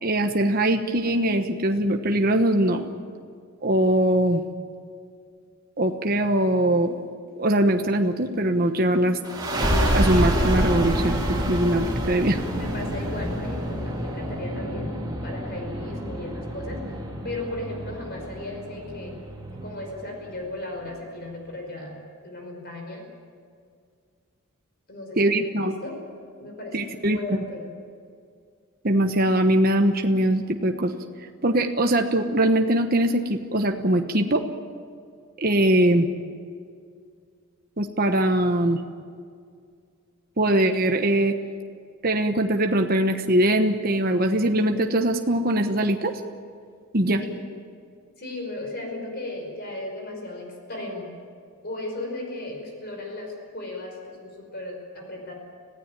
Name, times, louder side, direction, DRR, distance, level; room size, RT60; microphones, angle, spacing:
voice 1, 0.0-2.9 3.6-4.4 5.8-7.0 7.4-9.2 9.9-11.2 11.5-12.4 25.2-25.8 26.7-27.2 28.8-30.9 31.4-34.4 35.4-36.1 37.8-38.8 40.4-41.3 42.0-46.1 46.9-47.2, right 1 dB, 40° right, 4 dB, 1.1 m, -21 dB
sound 1, 9.2-20.5, equal, 20° right, 3.0 m, -27 dB
voice 2, 12.5-19.2 19.6-21.9 22.2-23.1 24.9-25.3 25.6-26.0 26.4-27.7 47.2-47.5 48.2-51.1 51.6-55.3, left 2 dB, 45° left, 2 dB, 5.4 m, -36 dB
26.5 x 16.0 x 9.1 m, 2.2 s
head